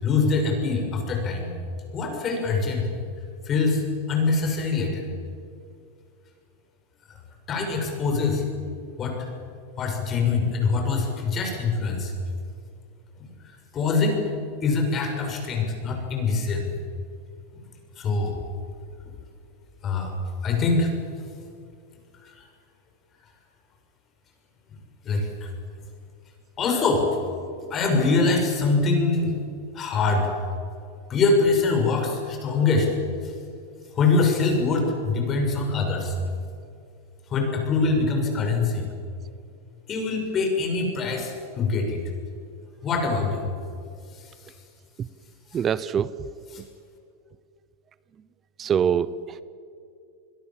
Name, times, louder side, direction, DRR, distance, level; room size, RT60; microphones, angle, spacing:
voice 1, 0.0-1.5 1.9-2.9 3.5-5.0 7.5-8.4 9.0-9.3 9.8-12.1 13.2-13.3 13.7-14.2 14.6-16.7 18.0-18.4 19.8-20.1 20.4-20.9 22.4-22.5 25.1-25.5 26.6-27.1 27.7-29.3 29.8-30.3 31.1-32.9 33.2-33.3 33.9-36.1 37.3-38.9 39.9-42.0 42.8-43.5 45.5-45.6 46.5-46.6, left 4 dB, 30° left, 2 dB, 6.9 m, -23 dB
voice 2, 45.5-46.1 48.6-49.4, right 8 dB, 30° right, 18 dB, 0.8 m, -24 dB
27.0 x 21.5 x 7.7 m, 2.5 s
supercardioid pair, 120°, 0 cm